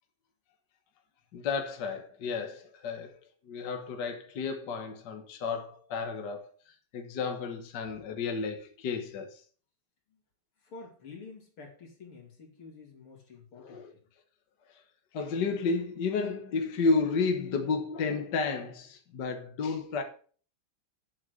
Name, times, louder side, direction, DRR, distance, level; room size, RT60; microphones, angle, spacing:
voice 1, 1.3-6.5 6.9-9.4 13.6-13.9 15.1-20.0, left 4 dB, 55° left, 1.8 m, -32 dB
voice 2, 10.6-13.8, left 4 dB, 85° left, 3.7 m, -49 dB
8.9 x 7.5 x 6.4 m
omnidirectional pair, 2.3 m